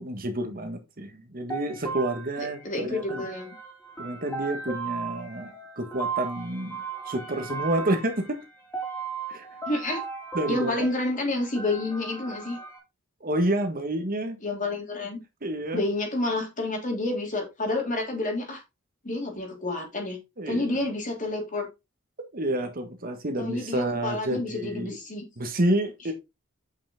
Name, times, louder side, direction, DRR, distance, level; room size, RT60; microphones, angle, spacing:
voice 1, 0.0-3.3 4.0-6.8 7.1-8.4 9.3-9.5 10.3-10.9 13.2-14.4 15.4-15.8 20.4-20.7 22.3-25.0 25.4-26.1, right 1 dB, 45° right, 1.6 m, -29 dB
sound 1, 1.5-12.8, right 5 dB, 10° left, 3.3 m, -37 dB
voice 2, 2.4-3.5 9.7-10.0 10.5-12.6 14.4-15.2 15.7-18.6 19.0-20.2 20.5-21.7 23.4-25.2, left 2 dB, 40° left, 3.2 m, -29 dB
8.3 x 5.8 x 3.7 m
head